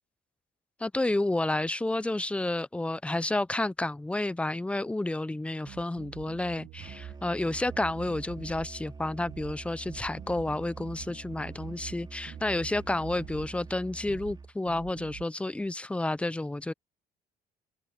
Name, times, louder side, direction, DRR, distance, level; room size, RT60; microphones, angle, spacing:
voice 1, 0.8-16.7, left 2 dB, 5° left, 0.5 m, -30 dB
sound 1, 5.7-7.2 7.5-8.7 9.3-9.6 9.9-12.0 12.3-13.5 14.1-14.4 14.7-15.3, right 16 dB, 70° right, 0.8 m, -46 dB
Musical instrument, 6.8-14.6, right 4 dB, 25° right, 2.6 m, -45 dB
cardioid pair, 110°, 17 cm